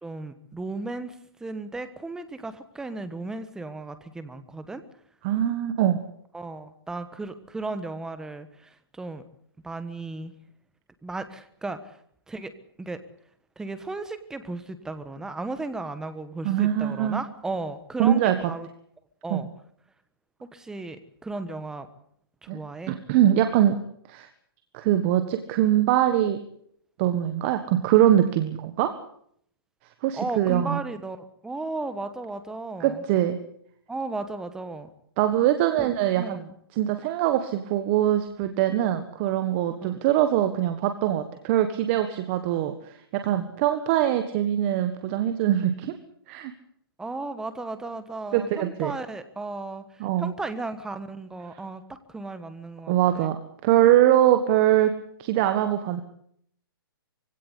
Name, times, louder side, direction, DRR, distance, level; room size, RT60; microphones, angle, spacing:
voice 1, 0.0-4.8 6.3-9.2 9.6-10.3 11.0-12.0 12.3-12.5 12.8-13.0 13.6-18.7 19.2-19.5 20.5-21.9 22.4-23.0 30.1-33.0 33.9-34.9 35.8-36.5 39.8-40.0 47.0-53.3, right 3 dB, 5° right, 11 dB, 1.3 m, -35 dB
voice 2, 5.2-6.0 16.4-17.2 18.0-18.4 19.3-19.4 22.5-22.6 22.9-23.8 24.1-24.3 24.7-26.4 27.0-29.0 30.0-30.8 32.8-33.4 35.2-36.4 36.8-42.7 43.1-46.0 46.3-46.5 48.3-48.9 50.0-50.3 52.9-53.4 53.6-56.0, right 12 dB, 30° right, 8 dB, 1.5 m, -22 dB
23.5 x 17.0 x 8.2 m, 0.65 s
hypercardioid pair, 155°, 12 cm